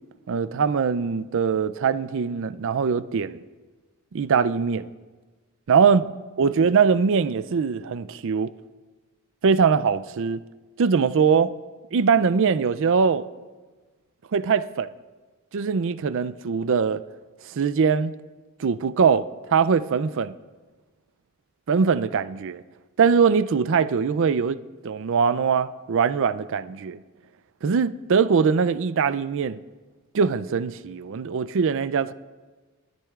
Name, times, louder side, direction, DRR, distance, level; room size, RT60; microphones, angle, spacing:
voice 1, 0.3-3.4 4.1-4.9 5.7-6.0 6.4-8.5 9.4-10.4 10.8-11.5 11.9-13.3 14.3-14.9 15.5-17.0 17.5-18.1 18.6-19.2 19.5-20.3 21.7-22.6 23.0-27.0 27.6-29.6 30.1-32.1, right 6 dB, 60° right, 0.4 m, -22 dB
22.5 x 13.0 x 2.4 m
head